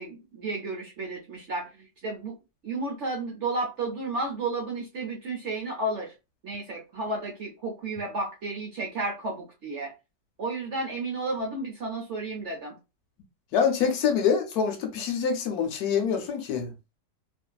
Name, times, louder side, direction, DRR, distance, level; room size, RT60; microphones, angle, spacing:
voice 1, 0.0-2.3 2.6-6.1 6.4-9.9 10.4-12.8, right 2 dB, 60° right, 0.8 m, -32 dB
voice 2, 13.5-16.7, left 6 dB, 70° left, 1.0 m, -25 dB
2.7 x 2.5 x 2.2 m
omnidirectional pair, 1.8 m